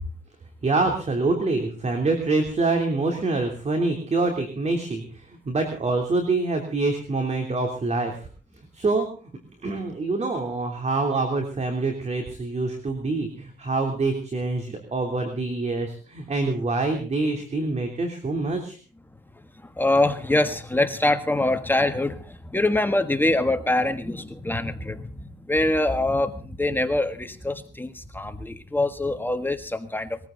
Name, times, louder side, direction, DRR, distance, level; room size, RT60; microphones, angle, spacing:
voice 1, 0.6-8.3 8.7-9.1 9.6-18.8, right 3 dB, 35° right, 4 dB, 3.1 m, -25 dB
voice 2, 19.8-25.1 25.5-30.2, left 2 dB, 10° left, 8 dB, 1.5 m, -24 dB
21.5 x 15.0 x 3.9 m, 0.41 s
cardioid pair, 90°, 20 cm